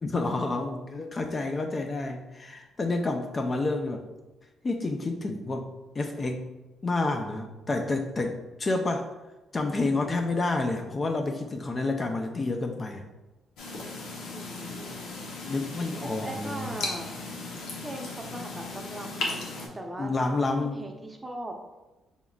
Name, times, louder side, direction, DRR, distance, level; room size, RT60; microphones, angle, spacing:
voice 1, 0.0-4.0 4.6-5.7 5.9-6.5 6.8-9.1 9.5-13.0 15.4-16.8 20.0-20.8, left 2 dB, 35° left, 4 dB, 0.4 m, -29 dB
sound 1, 13.6-19.7, left 3 dB, 90° left, 0.8 m, -36 dB
voice 2, 14.3-15.1 16.0-17.2 17.8-21.5, right 1 dB, 15° right, 2 dB, 0.6 m, -40 dB
5.0 x 3.6 x 2.3 m, 1.1 s
cardioid pair, 90°, 0 cm